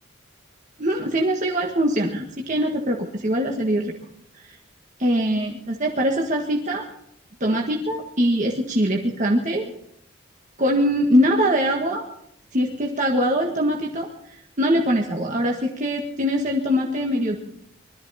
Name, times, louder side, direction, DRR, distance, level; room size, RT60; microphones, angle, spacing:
voice 1, 0.8-3.9 5.0-6.8 7.4-9.7 10.6-12.0 12.5-14.1 14.6-17.4, equal, 40° right, 0 dB, 1.6 m, -22 dB
21.0 x 13.5 x 4.3 m, 0.72 s
head